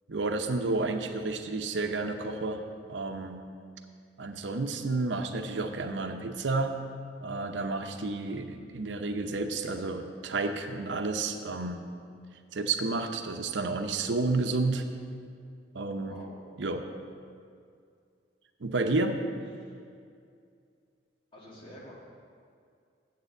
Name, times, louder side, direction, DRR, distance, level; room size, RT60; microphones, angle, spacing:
voice 1, 0.1-2.6 2.9-3.4 4.2-6.8 7.2-11.8 12.5-14.8 15.7-16.2 16.6-16.8 18.6-19.2, right 3 dB, 80° right, 6 dB, 0.7 m, -31 dB
voice 2, 16.0-16.4 19.6-19.8 21.3-22.0, equal, 30° left, -4 dB, 2.0 m, -48 dB
8.0 x 6.8 x 8.0 m, 2.3 s
head